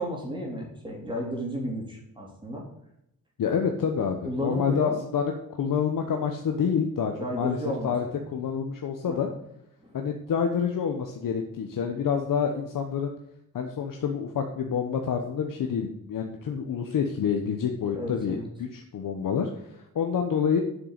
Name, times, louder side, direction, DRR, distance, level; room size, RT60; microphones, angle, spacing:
voice 1, 0.0-2.6 4.2-5.0 7.2-8.2 9.1-9.3 18.0-18.4, equal, 15° right, -1 dB, 3.1 m, -33 dB
voice 2, 3.4-5.3 5.6-7.6 7.8-9.3 9.9-13.1 13.5-20.6, left 7 dB, 70° left, 4 dB, 1.1 m, -28 dB
7.7 x 6.4 x 8.0 m, 0.80 s
wide cardioid pair, 135°, 34 cm